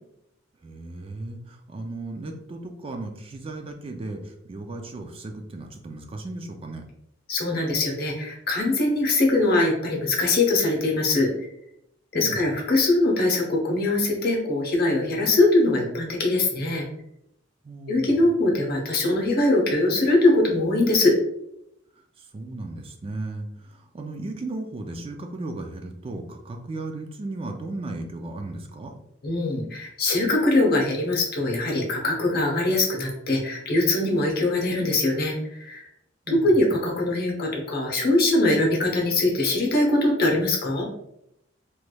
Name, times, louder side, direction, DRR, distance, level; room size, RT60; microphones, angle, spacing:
voice 1, 0.6-6.8 12.1-12.5 17.6-18.1 22.2-28.9 36.3-36.6, right 2 dB, 30° right, 4 dB, 0.3 m, -35 dB
voice 2, 7.3-11.3 12.1-16.8 17.9-21.1 29.2-35.9 36.3-40.8, left 2 dB, 50° left, -1 dB, 0.8 m, -22 dB
3.2 x 3.0 x 2.2 m, 0.79 s
head